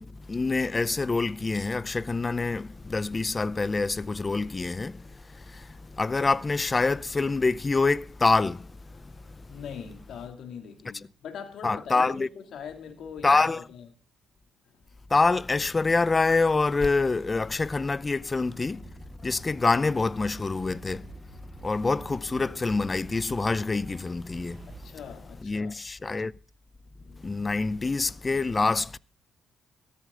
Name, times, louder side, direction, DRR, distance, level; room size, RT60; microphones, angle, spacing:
voice 1, 0.0-9.5 11.6-12.3 13.2-13.6 15.1-21.1 21.6-24.8 25.4-26.3 27.2-29.0, left 3 dB, 25° left, 0.5 m, -26 dB
voice 2, 9.1-13.9 14.7-14.8 24.8-25.8 27.0-27.5, left 7 dB, 70° left, 2.7 m, -42 dB
sound 1, 18.6-24.9, right 4 dB, 45° right, 3.3 m, -48 dB
14.5 x 13.5 x 3.8 m
cardioid pair, 90°, 0 cm